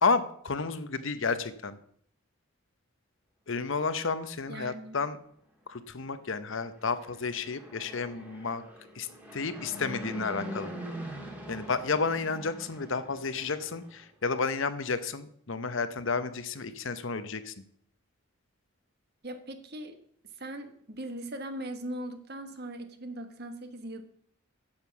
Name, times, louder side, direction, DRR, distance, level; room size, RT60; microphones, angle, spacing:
voice 1, 0.0-1.8 3.5-5.2 5.7-8.6 8.9-9.1 9.3-10.7 11.5-17.5, left 4 dB, 65° left, 12 dB, 0.8 m, -31 dB
voice 2, 4.5-5.0 19.2-20.0 20.4-24.0, right 1 dB, 50° right, 8 dB, 1.3 m, -39 dB
Fixed-wing aircraft airplane, 6.7-14.1, right 1 dB, 10° right, 1.8 m, -43 dB
9.5 x 7.4 x 7.0 m, 0.66 s
head